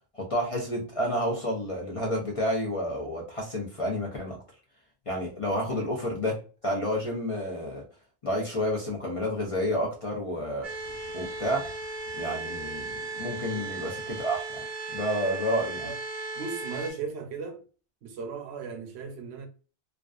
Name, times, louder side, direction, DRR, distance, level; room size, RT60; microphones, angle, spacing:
voice 1, 0.1-4.4 5.1-7.8 8.2-10.7 11.1-11.7 12.2-14.4 14.9-15.9, equal, 45° left, 0.5 m, -30 dB
sound 1, 10.6-16.9, right 3 dB, 50° right, 0.5 m, -36 dB
voice 2, 16.4-17.6 18.0-19.5, right 5 dB, 75° right, 0.9 m, -37 dB
2.4 x 2.2 x 2.3 m
omnidirectional pair, 1.1 m